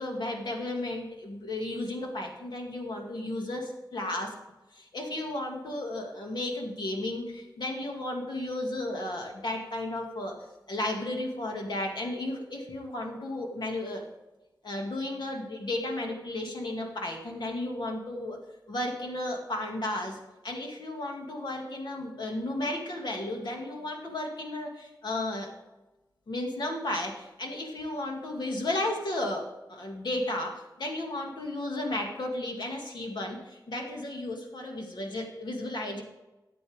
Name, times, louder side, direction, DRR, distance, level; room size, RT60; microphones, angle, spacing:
voice 1, 0.0-4.3 4.7-10.4 10.7-14.0 14.6-18.4 18.7-25.5 26.3-36.0, left 1 dB, 70° left, 1 dB, 2.2 m, -34 dB
13.5 x 8.4 x 3.6 m, 1.1 s
wide cardioid pair, 105°, 8 cm